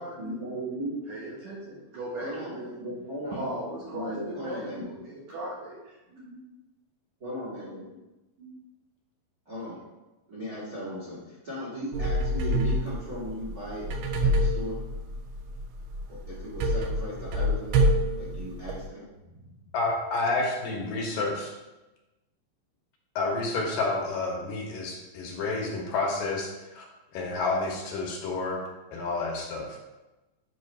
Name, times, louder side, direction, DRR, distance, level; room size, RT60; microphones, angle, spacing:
voice 1, 0.2-1.2 2.2-4.9 6.1-6.4 7.2-8.0 8.4-8.6 9.4-9.8 10.3-13.8 14.2-14.8 16.1-17.9 18.2-19.6, equal, 50° right, -7 dB, 1.1 m, -37 dB
voice 2, 1.1-2.7 3.3-6.0, right 1 dB, 65° right, -6 dB, 1.8 m, -37 dB
sound 1, 11.9-18.9, equal, 85° right, 2.6 m, -27 dB
voice 3, 19.7-21.5 23.2-26.9 27.1-28.6 28.9-29.8, left 3 dB, 70° left, -1 dB, 2.5 m, -29 dB
7.8 x 3.2 x 5.4 m, 1.1 s
omnidirectional pair, 4.4 m